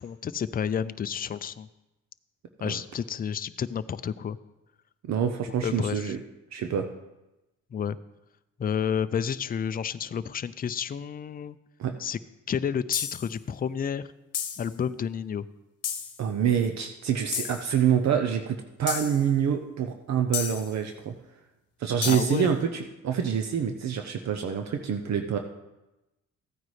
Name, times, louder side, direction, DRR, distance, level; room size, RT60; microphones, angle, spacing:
voice 1, 0.0-1.7 2.6-4.4 5.6-6.1 7.7-8.0 8.6-11.6 12.0-12.2 12.5-14.0 14.6-15.5 22.0-22.5, left 7 dB, 30° left, 13 dB, 0.4 m, -30 dB
voice 2, 5.0-6.2 6.5-6.9 11.8-11.9 16.2-21.1 21.8-25.4, right 8 dB, 65° right, 6 dB, 0.8 m, -26 dB
sound 1, 12.9-13.3 14.3-14.7 15.8-16.2 17.3-17.7 18.9-19.2 20.3-20.7 22.0-22.4, left 8 dB, 55° left, 1.1 m, -32 dB
15.0 x 9.2 x 3.2 m, 1.0 s
cardioid pair, 90°, 30 cm